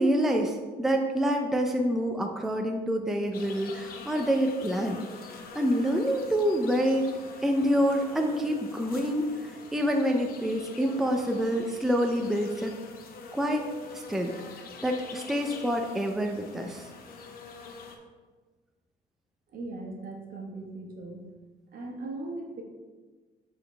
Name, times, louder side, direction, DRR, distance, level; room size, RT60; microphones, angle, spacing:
voice 1, 0.0-5.0 5.5-7.1 7.4-12.7 13.3-13.6 13.9-14.3 14.8-16.9, equal, ahead, 2 dB, 0.5 m, -27 dB
sound 1, 3.3-18.0, left 4 dB, 60° left, 0.9 m, -45 dB
voice 2, 19.5-21.2 21.7-22.6, right 2 dB, 60° right, 1 dB, 1.3 m, -39 dB
8.2 x 4.0 x 3.3 m, 1.4 s
cardioid pair, 110°, 17 cm